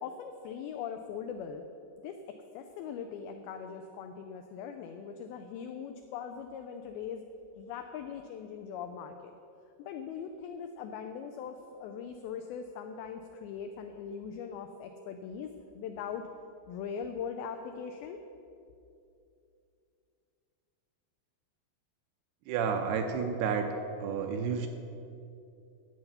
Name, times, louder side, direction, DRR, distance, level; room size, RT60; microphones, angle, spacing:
voice 1, 0.0-1.6 2.0-7.2 7.6-9.3 9.8-16.2 16.7-18.2, left 7 dB, 90° left, 6 dB, 2.1 m, -41 dB
voice 2, 22.5-23.7 24.0-24.7, right 6 dB, 80° right, 5 dB, 2.4 m, -30 dB
11.0 x 8.0 x 5.6 m, 2.6 s
omnidirectional pair, 5.0 m